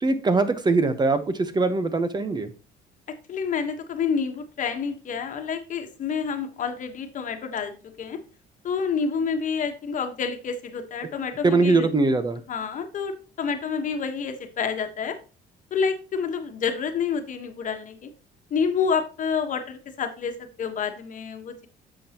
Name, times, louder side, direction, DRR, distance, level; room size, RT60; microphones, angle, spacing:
voice 1, 0.0-2.5 11.4-12.4, right 3 dB, 25° right, 11 dB, 1.0 m, -22 dB
voice 2, 3.3-8.2 8.6-11.9 12.5-15.2 15.7-18.1 18.5-21.7, left 6 dB, 50° left, 6 dB, 1.3 m, -28 dB
10.0 x 7.0 x 3.0 m, 0.34 s
cardioid pair, 110°, 17 cm